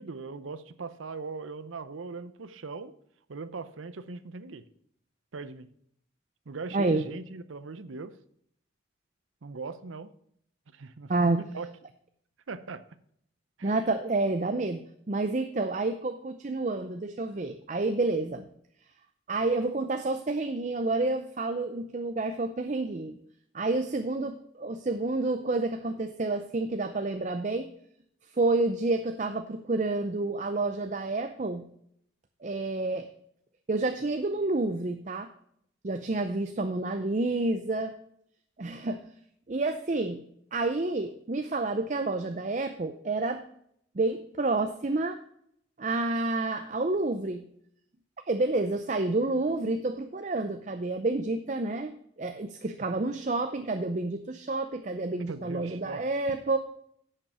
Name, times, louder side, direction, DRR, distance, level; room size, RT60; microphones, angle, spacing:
voice 1, 0.0-2.9 3.3-4.6 5.3-5.7 6.5-8.2 9.4-10.1 10.7-11.7 12.5-12.8 13.6-13.9 55.3-56.0, right 4 dB, 90° right, 13 dB, 0.7 m, -40 dB
voice 2, 6.7-7.0 11.1-11.4 13.6-14.8 15.1-18.5 19.3-23.2 23.5-27.7 28.3-31.6 32.4-33.1 33.7-35.3 35.8-37.9 38.6-39.0 39.5-40.2 40.5-43.4 43.9-45.2 45.8-47.4 48.3-56.6, right 2 dB, 40° right, 8 dB, 0.5 m, -29 dB
10.0 x 6.6 x 4.9 m, 0.69 s
head